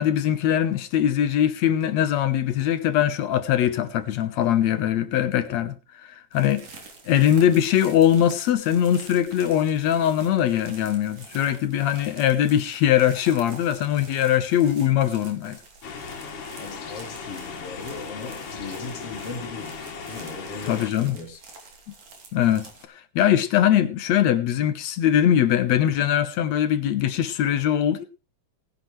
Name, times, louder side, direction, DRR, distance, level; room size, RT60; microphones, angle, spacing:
voice 1, 0.0-6.6 7.1-15.6 20.7-21.2 22.3-22.7 23.2-28.1, left 10 dB, 70° left, 2.2 m, -21 dB
sound 1, 6.3-22.9, right 4 dB, 75° right, 4.5 m, -48 dB
sound 2, 15.8-20.9, left 5 dB, 90° left, 3.4 m, -37 dB
voice 2, 16.5-21.4, left 3 dB, 50° left, 3.2 m, -38 dB
19.0 x 10.0 x 3.2 m
omnidirectional pair, 3.5 m